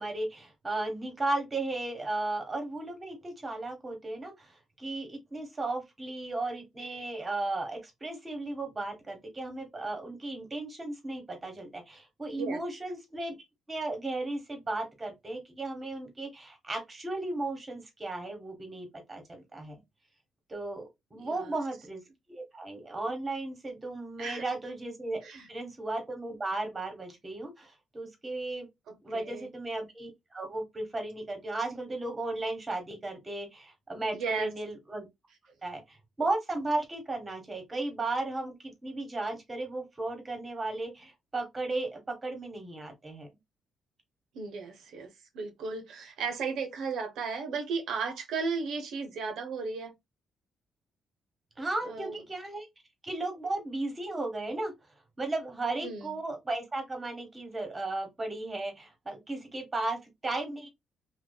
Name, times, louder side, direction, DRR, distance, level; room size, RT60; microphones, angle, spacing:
voice 1, 0.0-13.3 13.7-19.8 20.5-22.0 22.3-28.7 29.0-35.1 35.6-43.3 51.6-52.7 53.0-54.7 55.2-60.7, right 2 dB, 20° right, 1.1 m, -35 dB
voice 2, 21.1-21.5 24.2-24.4 25.2-25.5 28.9-29.5 34.1-34.5 44.3-49.9 51.9-52.2 55.8-56.1, right 5 dB, 80° right, 0.6 m, -35 dB
2.6 x 2.2 x 2.2 m
cardioid pair, 110°, 0 cm